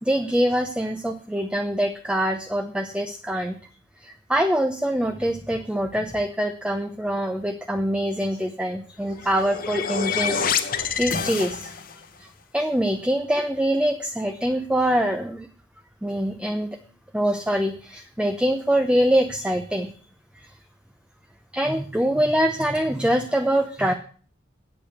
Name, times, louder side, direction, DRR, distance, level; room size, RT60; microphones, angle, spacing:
voice 1, 0.0-3.6 4.0-11.8 12.2-12.3 12.5-15.5 16.0-16.7 17.1-19.9 21.5-23.9, equal, 5° right, 6 dB, 0.6 m, -24 dB
sound 1, 9.0-12.0, left 6 dB, 45° left, 0.9 m, -27 dB
8.7 x 8.5 x 6.5 m, 0.43 s
head